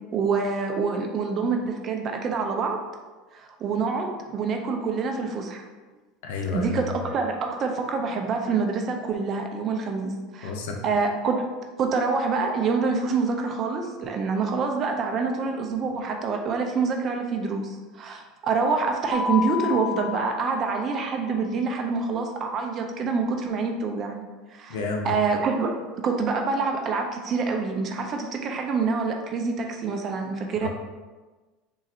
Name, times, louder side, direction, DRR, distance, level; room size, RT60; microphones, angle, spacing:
voice 1, 0.1-2.8 3.3-5.6 6.5-10.5 10.8-11.5 11.8-24.2 24.5-24.8 25.0-30.7, right 4 dB, 30° right, 3 dB, 0.5 m, -26 dB
voice 2, 6.2-6.7 10.4-10.8 24.7-25.1 30.6-30.7, left 4 dB, 80° left, 1 dB, 0.7 m, -30 dB
Mallet percussion, 19.1-21.2, left 6 dB, 15° right, 0.9 m, -31 dB
3.8 x 2.5 x 4.2 m, 1.3 s
supercardioid pair, 155°, 0 cm